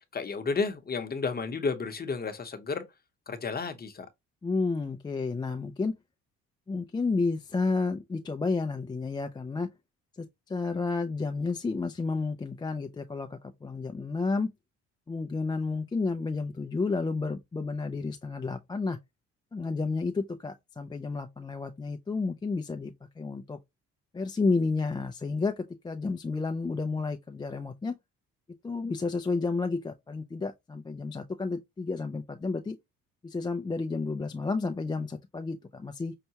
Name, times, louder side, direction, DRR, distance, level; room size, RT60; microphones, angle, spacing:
voice 1, 0.1-2.8 3.3-4.1, left 4 dB, 30° left, 0.8 m, -32 dB
voice 2, 4.4-5.9 6.7-9.7 10.2-14.5 15.1-19.0 19.5-23.6 24.1-27.9 28.6-32.8 33.2-36.1, left 3 dB, 15° left, 0.4 m, -31 dB
5.6 x 2.2 x 2.8 m
cardioid pair, 90°, 30 cm